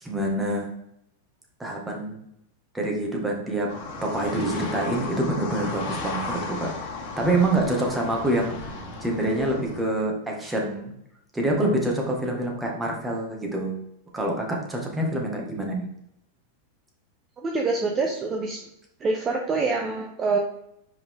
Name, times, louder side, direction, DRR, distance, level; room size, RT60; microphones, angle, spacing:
voice 1, 0.0-0.7 1.6-2.2 2.7-3.7 4.0-6.7 7.2-8.7 9.0-10.9 11.3-13.8 14.1-15.8, right 1 dB, 10° right, 0 dB, 1.8 m, -26 dB
sound 1, 3.7-9.8, left 3 dB, 45° left, 1.9 m, -35 dB
voice 2, 17.4-18.6 19.0-20.4, right 3 dB, 25° right, 1 dB, 0.9 m, -25 dB
5.6 x 5.1 x 3.7 m, 0.76 s
hypercardioid pair, 120°, 0 cm